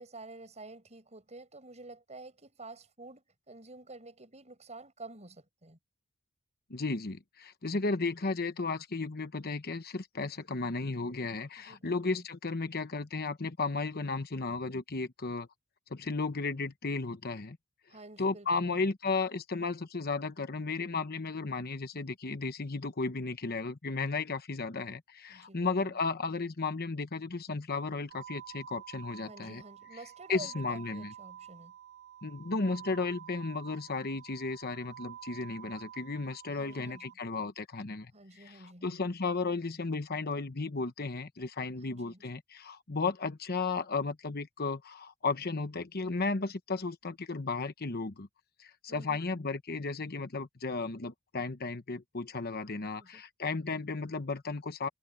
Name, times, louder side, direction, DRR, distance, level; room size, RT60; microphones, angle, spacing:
voice 1, 0.0-5.8 11.6-12.2 17.9-18.8 25.3-25.9 29.2-31.7 32.6-32.7 36.5-37.1 38.1-39.0 41.8-42.3 48.9-49.2 53.0-53.2, right 2 dB, 30° right, 7.1 m, -50 dB
voice 2, 6.7-15.5 15.9-17.6 18.2-29.6 30.3-31.1 32.2-48.3 48.6-54.9, left 3 dB, 45° left, 1.0 m, -34 dB
sound 1, 28.1-37.1, right 10 dB, 50° right, 3.7 m, -50 dB
head